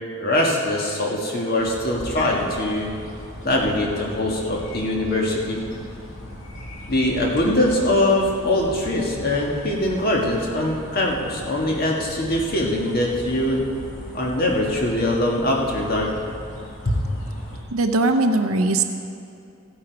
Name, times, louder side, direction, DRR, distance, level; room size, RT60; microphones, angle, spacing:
voice 1, 0.1-2.9 3.4-5.6 6.9-13.7 14.1-16.1 16.8-17.0, left 1 dB, 45° left, -1 dB, 1.7 m, -22 dB
sound 1, 1.6-17.6, equal, 70° left, 2.2 m, -38 dB
voice 2, 17.7-18.8, right 2 dB, 80° right, 6 dB, 0.8 m, -20 dB
15.5 x 8.6 x 4.7 m, 2.5 s
head